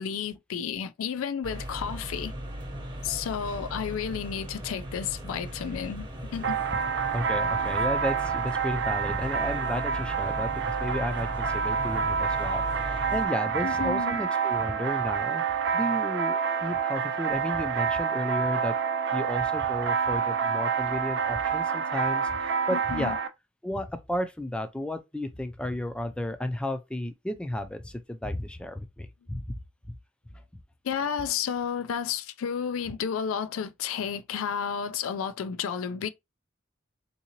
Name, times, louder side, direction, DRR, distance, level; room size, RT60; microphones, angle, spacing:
voice 1, 0.0-2.3 3.0-6.6 13.6-14.2 22.7-23.2 30.8-36.1, left 7 dB, 90° left, 0.4 m, -32 dB
sound 1, 1.4-13.3, right 1 dB, 25° right, 0.8 m, -38 dB
sound 2, 6.4-23.3, right 6 dB, 60° right, 0.5 m, -28 dB
voice 2, 7.1-18.7 19.1-23.2 23.6-29.6 29.9-30.0, left 1 dB, 5° left, 0.4 m, -33 dB
3.7 x 2.7 x 2.9 m
head